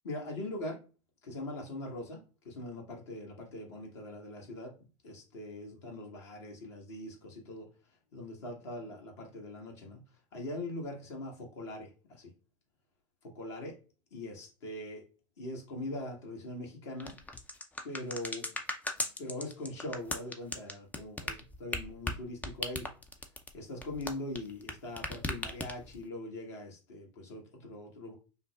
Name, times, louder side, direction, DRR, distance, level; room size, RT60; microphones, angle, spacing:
voice 1, 0.0-0.8 1.2-4.7 5.0-7.7 8.1-10.0 10.3-12.3 13.2-13.8 14.1-15.0 15.4-17.2 17.8-18.5 19.2-22.9 23.5-28.1, left 1 dB, 60° left, 1.4 m, -41 dB
sound 1, 17.0-24.7 25.0-26.0, left 2 dB, 10° left, 0.5 m, -37 dB
5.4 x 2.1 x 2.3 m
figure-of-eight pair, 80°, 16 cm